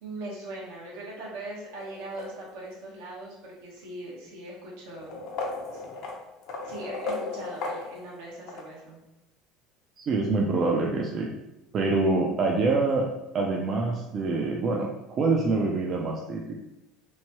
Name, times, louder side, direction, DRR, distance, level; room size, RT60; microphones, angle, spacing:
voice 1, 0.0-5.2 5.7-5.8 6.6-9.0, right 2 dB, 80° right, -4 dB, 1.0 m, -40 dB
sound 1, 1.8-2.8 3.8-3.9 4.9-8.7, left 3 dB, 65° left, 0.6 m, -36 dB
voice 2, 10.0-11.3 11.7-13.1 13.3-16.6, right 3 dB, 45° right, -1 dB, 0.4 m, -25 dB
3.0 x 2.2 x 2.8 m, 0.92 s
supercardioid pair, 105°, 0 cm